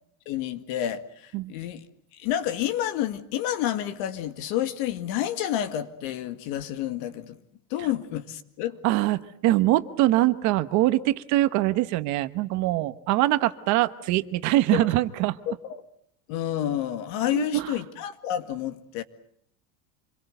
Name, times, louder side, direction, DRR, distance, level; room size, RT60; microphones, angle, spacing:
voice 1, 0.3-1.8 2.1-7.4 7.7-8.8 14.7-14.9 15.5-15.8 16.3-19.0, left 11 dB, 55° left, 2.0 m, -29 dB
voice 2, 8.8-15.4 17.3-17.7, right 16 dB, 45° right, 1.1 m, -23 dB
27.0 x 22.0 x 7.9 m
cardioid pair, 165°, 41 cm